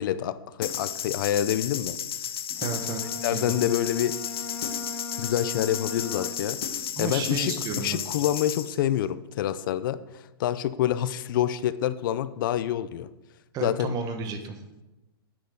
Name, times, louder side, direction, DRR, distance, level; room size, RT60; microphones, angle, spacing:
voice 1, 0.0-2.0 3.2-4.2 5.2-6.6 7.0-13.1 13.6-13.9, left 11 dB, 60° left, 14 dB, 0.5 m, -27 dB
sound 1, 0.6-8.8, left 9 dB, 75° left, 1.0 m, -33 dB
Bowed string instrument, 2.5-6.8, left 3 dB, 5° left, 0.8 m, -39 dB
voice 2, 2.6-3.0 3.3-3.6 7.0-8.0 13.5-14.6, right 5 dB, 30° right, 7 dB, 1.4 m, -32 dB
10.5 x 8.6 x 3.9 m, 1.0 s
hypercardioid pair, 130°, 13 cm